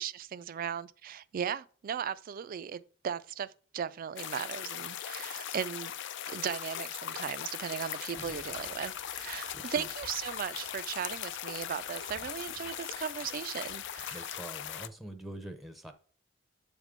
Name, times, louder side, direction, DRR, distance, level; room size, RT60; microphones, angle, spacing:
voice 1, 0.0-5.9 6.3-14.4, right 8 dB, 45° right, 0.3 m, -37 dB
sound 1, 4.2-14.9, left 10 dB, 60° left, 0.4 m, -40 dB
sound 2, 8.2-14.9, left 1 dB, 35° left, 1.1 m, -58 dB
voice 2, 9.5-9.9 14.1-15.9, right 1 dB, ahead, 0.6 m, -44 dB
7.2 x 3.6 x 4.9 m
head